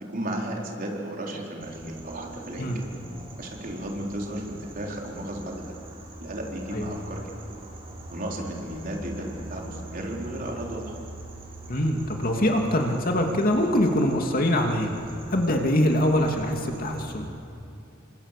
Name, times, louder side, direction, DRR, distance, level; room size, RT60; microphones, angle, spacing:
voice 1, 0.1-2.9 3.4-5.7 6.2-7.2 8.1-11.0, right 1 dB, 45° right, -1 dB, 4.4 m, -34 dB
sound 1, 1.6-17.2, right 1 dB, 30° right, 4.7 m, -43 dB
voice 2, 11.7-14.9 15.3-17.3, left 1 dB, 45° left, 2 dB, 2.7 m, -23 dB
30.0 x 25.0 x 6.9 m, 2.7 s
head